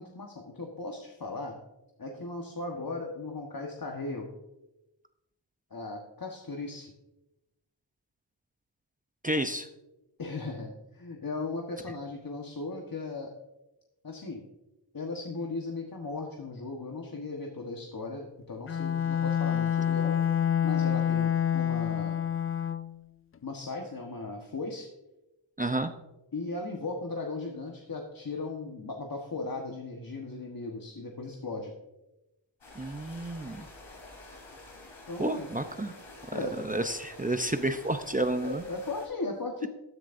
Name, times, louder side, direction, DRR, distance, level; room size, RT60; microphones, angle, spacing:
voice 1, 0.0-1.6 2.0-4.3 5.7-6.9 10.2-13.3 14.0-14.4 14.9-20.2 20.6-22.2 23.4-24.9 26.3-31.7 35.1-35.5 36.3-36.6 38.4-39.7, left 3 dB, 45° left, 1 dB, 1.3 m, -37 dB
voice 2, 9.2-9.7 25.6-25.9 32.8-33.6 35.2-35.9 36.6-38.6, right 1 dB, 20° right, 7 dB, 0.6 m, -30 dB
Bowed string instrument, 18.7-23.0, left 9 dB, 30° left, 0.4 m, -27 dB
sound 1, 32.6-39.1, left 2 dB, 80° left, 3.9 m, -49 dB
14.0 x 10.5 x 2.6 m, 0.97 s
wide cardioid pair, 70°, 46 cm